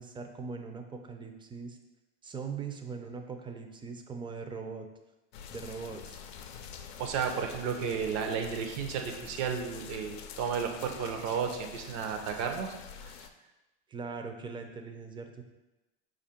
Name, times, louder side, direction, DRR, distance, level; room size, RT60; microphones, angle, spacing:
voice 1, 0.0-1.8 2.2-4.9 5.5-6.2 13.9-15.4, right 5 dB, 15° right, 5 dB, 0.5 m, -41 dB
sound 1, 5.3-13.3, left 7 dB, 80° left, 0.5 m, -46 dB
voice 2, 7.0-12.7 13.1-13.3, right 6 dB, 55° right, 4 dB, 0.7 m, -33 dB
4.9 x 2.6 x 4.3 m, 1.0 s
hypercardioid pair, 95°, 31 cm